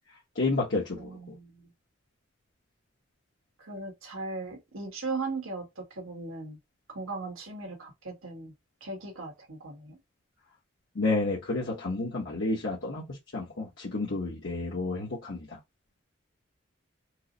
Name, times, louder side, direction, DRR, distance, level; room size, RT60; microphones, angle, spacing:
voice 1, 0.3-1.3 10.9-15.6, left 3 dB, 65° left, 1.0 m, -30 dB
voice 2, 1.0-1.7 3.6-6.6 6.9-8.5 8.8-10.0, right 3 dB, 90° right, 1.5 m, -38 dB
4.6 x 2.0 x 2.6 m
head